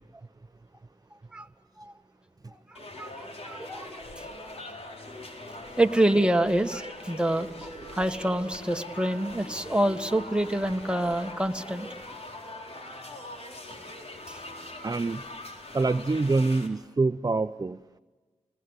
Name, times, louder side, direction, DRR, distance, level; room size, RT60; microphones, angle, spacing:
voice 1, 2.5-4.2 5.8-12.2 14.3-14.4, right 1 dB, 10° right, 6 dB, 1.6 m, -27 dB
sound 1, 2.7-16.7, left 1 dB, 60° left, 4.3 m, -42 dB
voice 2, 14.8-15.2 15.7-17.8, right 3 dB, 30° right, 10 dB, 0.7 m, -25 dB
26.5 x 20.5 x 8.2 m, 1.3 s
cardioid pair, 40°, 12 cm